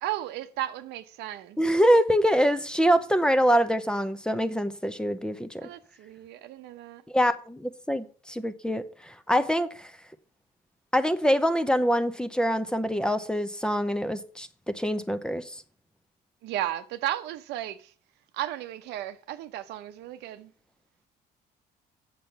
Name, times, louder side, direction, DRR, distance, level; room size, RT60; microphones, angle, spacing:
voice 1, 0.0-1.6 5.6-7.0 16.4-17.9 18.3-20.5, right 13 dB, 85° right, 0.8 m, -34 dB
voice 2, 1.6-5.7 7.1-9.9 10.9-15.6, equal, 5° left, 0.7 m, -25 dB
7.5 x 6.8 x 5.7 m
cardioid pair, 110°, 17 cm